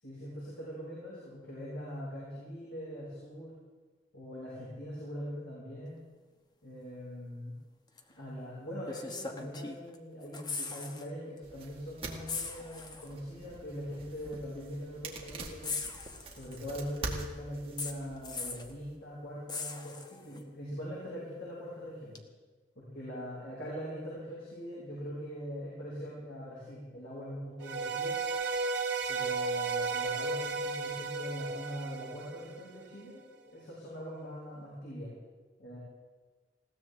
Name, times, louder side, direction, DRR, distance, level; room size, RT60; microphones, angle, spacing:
voice 1, 0.0-3.6 4.1-6.0 6.6-7.5 8.2-15.8 16.3-22.2 22.7-28.2 29.1-35.1 35.6-35.8, equal, 85° left, -8 dB, 6.2 m, -42 dB
sound 1, 8.0-8.1 8.9-10.0 10.2-11.1 11.4-11.5 12.3-13.1 14.2-14.3 15.6-16.7 17.8-18.7 19.5-20.4 22.2-22.3, left 4 dB, 25° left, 1.0 m, -39 dB
sound 2, 11.4-19.0, right 2 dB, 35° right, 1.9 m, -45 dB
sound 3, 27.6-32.8, right 4 dB, 85° right, 1.1 m, -34 dB
20.5 x 16.5 x 3.6 m, 1.3 s
head